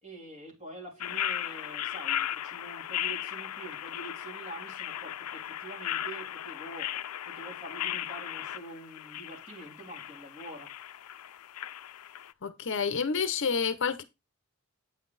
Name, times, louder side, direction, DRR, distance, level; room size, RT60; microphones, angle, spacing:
voice 1, 0.0-6.9 7.3-10.7, right 2 dB, 30° right, 3.4 m, -46 dB
sound 1, 1.0-12.3, left 12 dB, 90° left, 0.4 m, -36 dB
voice 2, 12.4-14.0, left 5 dB, 55° left, 0.7 m, -29 dB
8.7 x 5.7 x 4.0 m
head